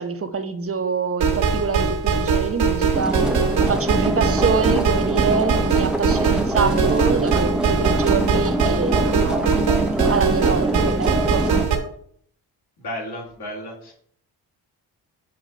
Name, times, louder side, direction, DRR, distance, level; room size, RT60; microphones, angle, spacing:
voice 1, 0.0-3.2 3.7-9.6 10.1-11.5, right 5 dB, 30° right, 0.9 m, -25 dB
sound 1, 1.2-11.8, right 5 dB, 75° right, 1.6 m, -21 dB
sound 2, 2.9-11.6, right 1 dB, ahead, 0.6 m, -25 dB
voice 2, 12.8-13.9, equal, 60° left, 2.4 m, -33 dB
8.3 x 2.8 x 5.0 m
supercardioid pair, 50°, 45 cm